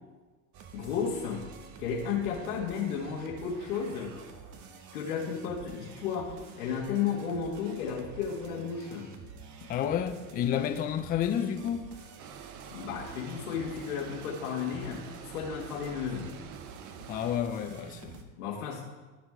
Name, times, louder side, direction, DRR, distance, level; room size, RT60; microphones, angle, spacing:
sound 1, 0.5-18.2, right 6 dB, 40° right, 1.1 m, -49 dB
voice 1, 0.7-1.5 1.8-4.2 4.9-9.1 12.7-16.4 18.4-18.8, left 7 dB, 85° left, 1.9 m, -33 dB
voice 2, 9.7-11.9 17.1-18.2, left 9 dB, 20° left, 0.4 m, -30 dB
sound 2, 12.2-17.4, right 8 dB, 80° right, 0.9 m, -47 dB
14.0 x 5.1 x 3.7 m
supercardioid pair, 120°, 43 cm